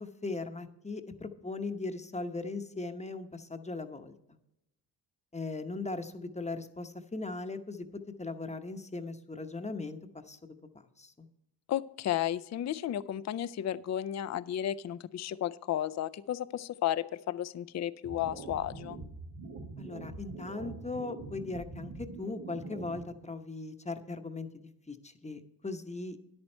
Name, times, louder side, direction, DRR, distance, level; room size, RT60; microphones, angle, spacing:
voice 1, 0.0-4.4 5.3-7.9 8.2-10.5 11.0-11.3 19.8-24.5 24.9-26.2, left 3 dB, 15° left, 8 dB, 0.9 m, -39 dB
voice 2, 11.7-19.0, left 11 dB, 45° left, 16 dB, 0.4 m, -33 dB
sound 1, 18.0-23.0, right 3 dB, 85° right, 1.9 m, -44 dB
10.0 x 8.8 x 4.4 m, 0.86 s
cardioid pair, 70°, 40 cm